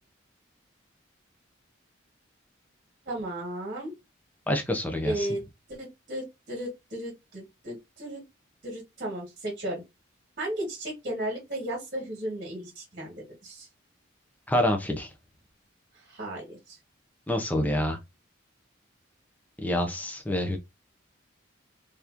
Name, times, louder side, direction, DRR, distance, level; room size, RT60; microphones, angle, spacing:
voice 1, 3.0-3.9 5.0-5.4 5.7-8.2 8.6-9.8 10.4-13.1 13.4-13.7 15.9-16.8, right 1 dB, 45° right, 1.5 m, -35 dB
voice 2, 4.5-5.3 14.5-15.1 17.3-18.0 19.6-20.6, left 1 dB, 10° left, 0.6 m, -27 dB
3.5 x 2.9 x 2.5 m
head